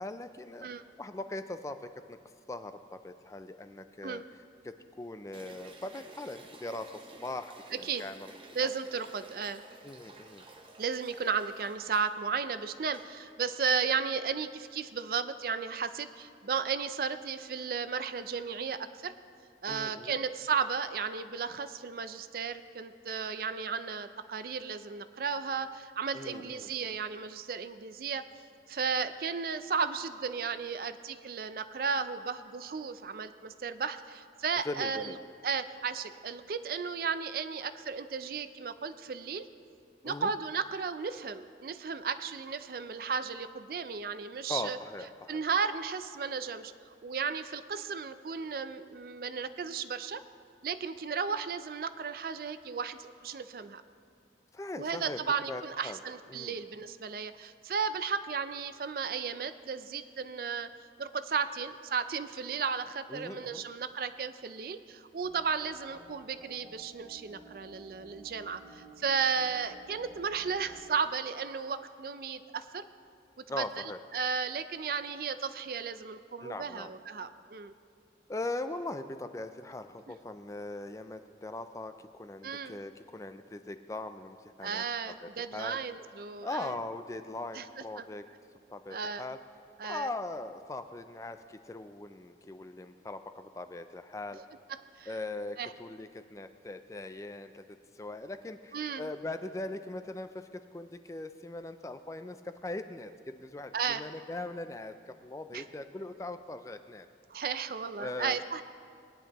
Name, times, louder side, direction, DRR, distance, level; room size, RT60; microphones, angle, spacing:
voice 1, 0.0-0.7 1.0-2.2 2.5-4.2 4.6-8.3 9.8-10.4 19.7-20.2 26.1-26.7 34.6-35.2 40.0-40.3 44.5-45.4 54.5-55.2 55.5-56.0 56.3-56.6 63.1-63.6 73.5-74.0 76.4-76.9 78.3-84.8 85.2-85.8 86.4-88.3 88.7-89.4 89.8-94.4 95.1-107.1 108.0-108.4, left 2 dB, 15° left, 9 dB, 0.3 m, -40 dB
sound 1, 5.3-13.3, right 2 dB, 30° right, 0.8 m, -53 dB
voice 2, 7.7-8.0 8.5-9.6 10.8-19.1 19.6-28.2 28.7-35.2 35.4-39.5 40.0-44.8 45.3-46.7 47.0-50.2 50.6-53.8 54.8-60.7 61.0-72.8 73.6-73.7 74.1-77.7 82.4-82.8 84.6-86.8 87.5-87.7 88.0-88.1 88.9-89.3 89.8-90.1 94.4-94.5 94.7-95.2 95.6-95.7 98.7-99.1 103.7-104.0 105.5-105.6 107.3-108.6, right 6 dB, 55° right, 12 dB, 0.4 m, -34 dB
sound 2, 65.2-70.8, right 2 dB, 90° right, 1.8 m, -54 dB
19.5 x 10.0 x 3.0 m, 2.3 s
head